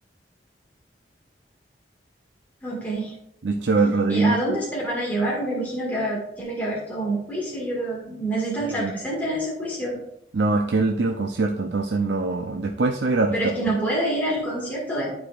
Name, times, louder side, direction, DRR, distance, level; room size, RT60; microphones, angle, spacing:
voice 1, 2.6-3.1 4.1-10.0 13.3-15.1, right 1 dB, 10° left, -5 dB, 1.9 m, -27 dB
voice 2, 3.4-4.6 8.7-8.9 10.3-13.4, right 3 dB, 75° right, 2 dB, 0.6 m, -23 dB
11.5 x 4.8 x 2.5 m, 0.76 s
head